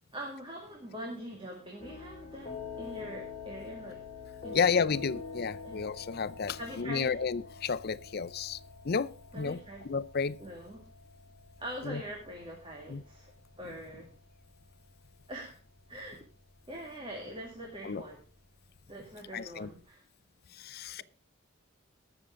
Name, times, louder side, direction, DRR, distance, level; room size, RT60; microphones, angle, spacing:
voice 1, 0.1-4.0 4.4-5.1 5.6-5.8 6.6-7.2 9.3-9.9 10.4-10.8 11.6-14.2 15.3-15.6 15.9-16.2 16.7-18.2 18.9-20.0, equal, 25° right, 2.2 m, -43 dB
sound 1, 1.8-19.8, left 5 dB, 25° left, 5.0 m, -47 dB
voice 2, 4.5-8.6 8.8-9.6 9.9-10.4 11.9-12.0 12.9-13.0 17.8-18.0 19.3-19.7 20.6-21.0, left 5 dB, 50° left, 0.5 m, -31 dB
20.0 x 7.0 x 3.8 m
head